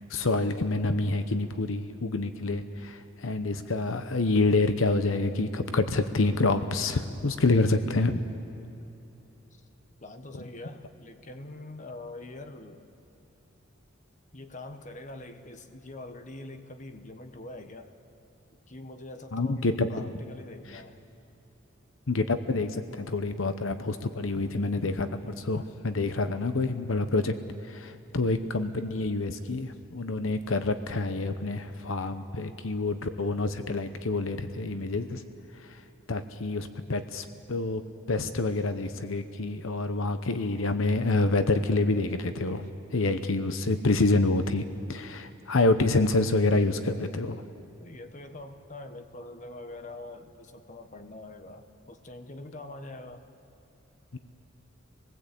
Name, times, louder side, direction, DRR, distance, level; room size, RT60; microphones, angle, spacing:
voice 1, 0.1-8.2 19.3-19.9 22.1-27.3 27.6-35.2 35.6-35.8 36.1-37.8 38.1-42.6 42.9-47.4 54.1-54.2, left 2 dB, 75° left, 9 dB, 0.9 m, -27 dB
voice 2, 10.0-12.8 14.3-17.9 18.7-19.6 19.9-21.0 47.8-53.2, left 2 dB, 35° left, 7 dB, 1.3 m, -44 dB
27.0 x 19.5 x 8.4 m, 2.9 s
head